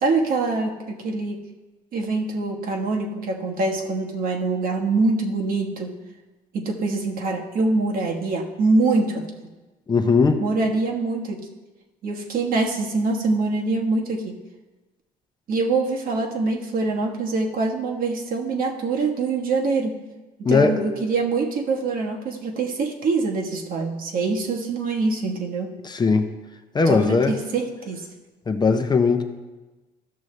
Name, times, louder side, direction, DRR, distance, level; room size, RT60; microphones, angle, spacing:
voice 1, 0.0-1.4 1.9-6.0 6.5-9.2 10.4-11.5 12.0-14.4 15.5-20.0 20.4-25.8 26.9-28.1, right 3 dB, 60° right, 1 dB, 1.3 m, -24 dB
voice 2, 9.9-10.4 20.4-20.7 25.8-26.3 26.7-27.4 28.5-29.2, left 4 dB, 25° left, 6 dB, 0.6 m, -18 dB
13.5 x 6.2 x 3.2 m, 1.2 s
cardioid pair, 110°, 17 cm